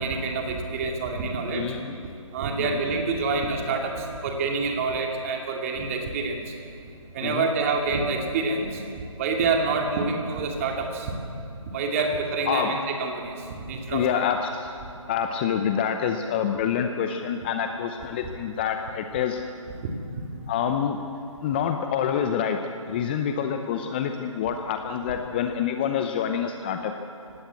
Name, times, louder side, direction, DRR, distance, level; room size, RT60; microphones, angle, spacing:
voice 1, 0.0-1.7 2.3-6.4 7.1-8.8 9.2-11.1 11.7-14.2, right 4 dB, 25° right, 2 dB, 2.4 m, -27 dB
voice 2, 1.5-2.0 7.2-7.4 12.5-12.8 13.9-14.5 15.1-19.4 20.5-21.0 21.4-22.6 22.9-26.9, left 8 dB, 20° left, 6 dB, 0.7 m, -27 dB
19.0 x 16.5 x 8.3 m, 2.7 s
figure-of-eight pair, 150°, 17 cm